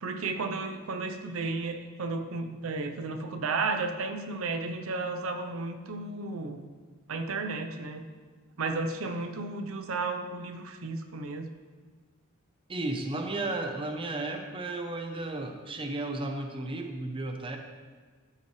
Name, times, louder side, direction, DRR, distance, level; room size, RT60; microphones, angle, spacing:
voice 1, 0.0-6.6 7.1-8.0 8.6-11.5, right 3 dB, 75° right, 6 dB, 0.6 m, -33 dB
voice 2, 12.7-17.6, right 2 dB, 25° right, 4 dB, 0.6 m, -34 dB
12.5 x 5.7 x 3.1 m, 1.5 s
head